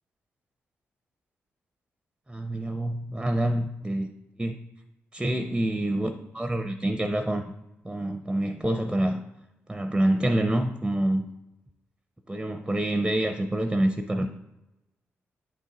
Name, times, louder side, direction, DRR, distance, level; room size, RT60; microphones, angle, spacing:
voice 1, 2.3-4.1 4.4-4.5 5.1-7.4 7.8-9.2 9.7-11.3 12.3-14.3, right 1 dB, 10° right, 6 dB, 0.5 m, -26 dB
8.6 x 3.8 x 4.0 m, 0.95 s
cardioid pair, 75°, 5 cm